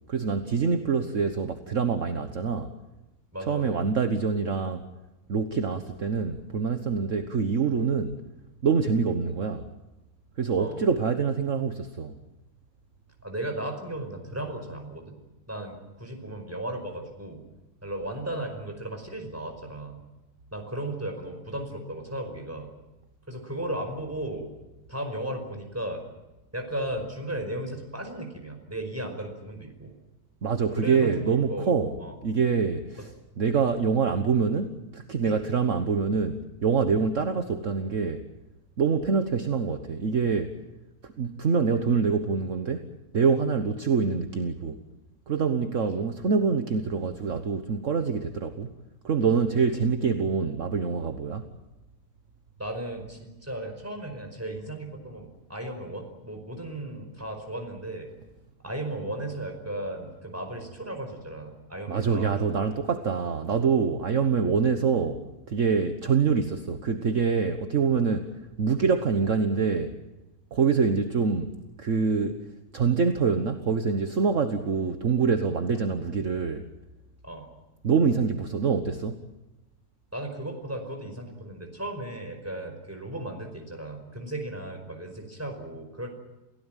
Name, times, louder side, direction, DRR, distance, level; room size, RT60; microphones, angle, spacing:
voice 1, 0.1-2.7 3.5-4.8 5.3-8.2 8.6-9.7 10.4-12.2 30.4-31.9 32.2-33.1 33.4-38.2 38.8-40.5 41.0-42.8 43.1-44.8 45.3-48.7 49.0-51.5 61.9-65.2 65.5-69.9 70.5-71.5 71.8-72.4 72.7-76.7 77.8-79.2, right 5 dB, 55° right, 8 dB, 1.5 m, -25 dB
voice 2, 3.3-3.8 10.6-10.8 13.2-15.2 15.5-17.4 17.8-20.0 20.5-22.7 23.3-24.5 24.9-26.0 26.5-29.9 30.7-32.2 35.3-35.4 45.8-46.0 52.6-58.1 58.6-62.7 77.2-77.5 80.1-86.1, right 1 dB, 10° right, 4 dB, 5.2 m, -35 dB
28.5 x 16.5 x 9.1 m, 1.0 s
omnidirectional pair, 1.7 m